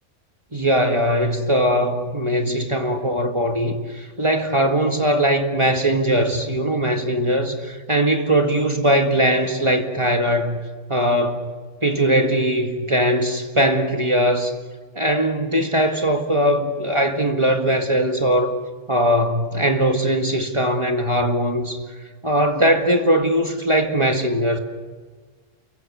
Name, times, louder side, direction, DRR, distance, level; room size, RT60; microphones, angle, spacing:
voice 1, 0.5-10.6 10.9-11.5 11.8-14.5 15.0-18.5 18.9-21.8 22.2-24.6, right 1 dB, 25° right, 1.8 m, -20 dB
28.5 x 23.5 x 6.4 m
omnidirectional pair, 1.3 m